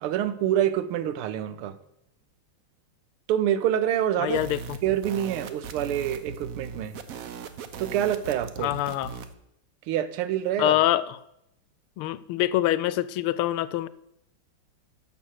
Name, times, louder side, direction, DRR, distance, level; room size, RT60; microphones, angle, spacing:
voice 1, 0.0-1.8 3.3-4.4 4.8-7.0 7.8-8.7 9.9-10.8, right 11 dB, 90° right, 13 dB, 1.6 m, -26 dB
voice 2, 4.2-4.8 8.6-9.2 10.6-11.2 12.0-13.9, left 14 dB, 90° left, 16 dB, 1.5 m, -25 dB
sound 1, 4.3-9.3, right 6 dB, 65° right, 0.8 m, -39 dB
12.5 x 5.6 x 6.3 m, 0.80 s
omnidirectional pair, 2.3 m